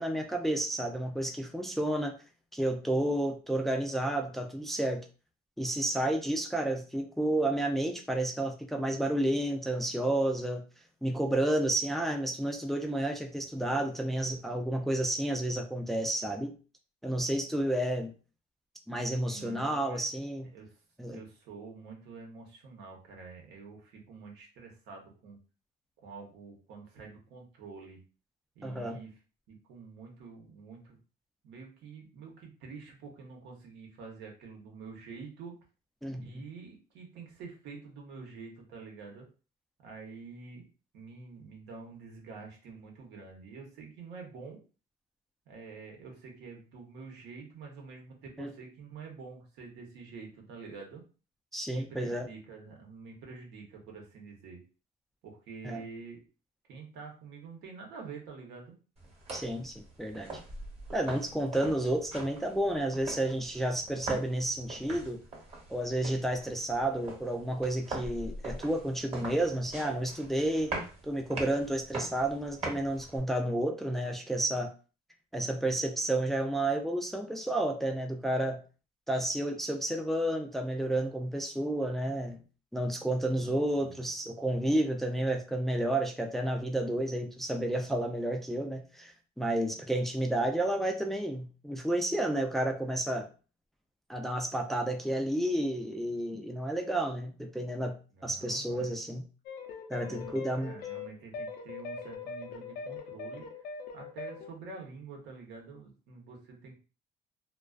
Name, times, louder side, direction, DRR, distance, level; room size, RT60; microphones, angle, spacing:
voice 1, 0.0-2.1 2.5-5.1 5.6-10.6 11.0-16.5 17.0-18.1 18.9-20.5 21.0-21.2 28.6-29.0 36.0-36.2 48.4-48.5 51.5-52.3 55.6-55.8 59.3-60.4 60.9-65.2 65.7-70.7 71.0-74.7 75.3-78.6 79.1-82.4 82.7-93.3 94.1-97.9 98.2-99.2 99.9-100.7, right 1 dB, ahead, 3 dB, 0.3 m, -31 dB
voice 2, 19.3-20.0 20.5-20.8 21.1-25.4 26.0-28.0 28.5-29.1 29.5-31.0 31.4-35.6 36.2-39.3 39.8-40.6 40.9-44.6 45.5-51.0 51.7-54.6 55.2-56.2 56.7-58.7 83.3-84.1 98.1-99.0 100.0-103.7 103.9-106.8, right 4 dB, 85° right, 1 dB, 0.9 m, -47 dB
sound 1, 59.0-73.2, right 2 dB, 40° right, 1.1 m, -43 dB
sound 2, 99.5-104.5, left 5 dB, 70° left, 0.5 m, -41 dB
2.3 x 2.3 x 2.3 m, 0.35 s
cardioid pair, 110°, 17 cm